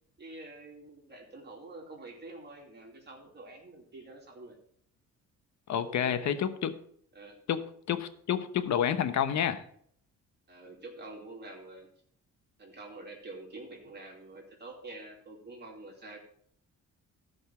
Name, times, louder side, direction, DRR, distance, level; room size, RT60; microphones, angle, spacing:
voice 1, 0.2-4.6 5.7-6.4 7.1-7.4 10.5-11.9 12.6-16.2, right 2 dB, 35° right, 0 dB, 2.8 m, -47 dB
voice 2, 5.7-6.7 7.5-9.6, left 9 dB, 65° left, 12 dB, 1.1 m, -29 dB
13.5 x 5.4 x 5.8 m, 0.64 s
cardioid pair, 90°, 30 cm